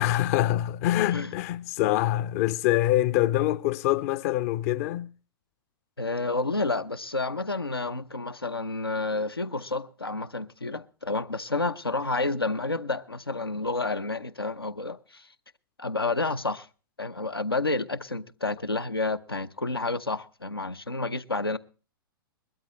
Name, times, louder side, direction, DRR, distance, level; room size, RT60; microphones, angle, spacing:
voice 1, 0.0-5.1, left 14 dB, 40° left, 0.6 m, -25 dB
voice 2, 6.0-15.3 15.8-16.7 17.0-21.6, left 3 dB, 85° left, 0.8 m, -30 dB
21.0 x 13.0 x 3.1 m
figure-of-eight pair, 105°, 12 cm